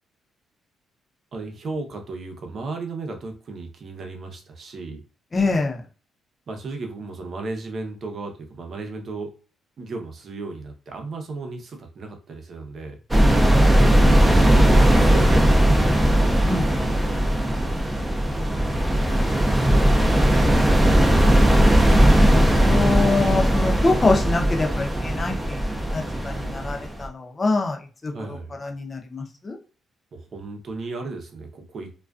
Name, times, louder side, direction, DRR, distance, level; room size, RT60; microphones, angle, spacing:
voice 1, 1.3-5.0 6.5-9.3 9.8-13.0 14.1-15.9 18.3-18.9 19.5-20.3 28.1-28.5 30.1-31.9, right 3 dB, 50° right, 3 dB, 0.7 m, -35 dB
voice 2, 5.3-5.8 16.4-17.6 22.2-29.6, left 3 dB, 30° left, 2 dB, 0.6 m, -26 dB
sound 1, 13.1-27.1, right 1 dB, 15° right, 0.5 m, -18 dB
2.3 x 2.3 x 2.4 m, 0.35 s
cardioid pair, 90°, 0 cm